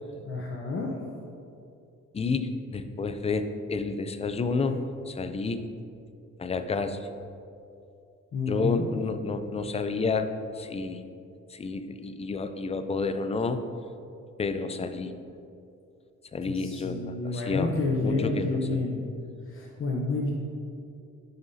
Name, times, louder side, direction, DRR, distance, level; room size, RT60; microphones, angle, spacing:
voice 1, 0.2-0.9 8.3-8.9 16.5-19.0 19.5-20.3, left 3 dB, 45° left, 0 dB, 0.9 m, -29 dB
voice 2, 2.1-5.7 6.4-7.1 8.4-10.3 10.6-11.0 11.5-13.7 14.4-15.1 16.3-19.0, left 4 dB, 20° left, 10 dB, 0.4 m, -30 dB
11.0 x 5.4 x 2.7 m, 2.6 s
cardioid pair, 90°, 30 cm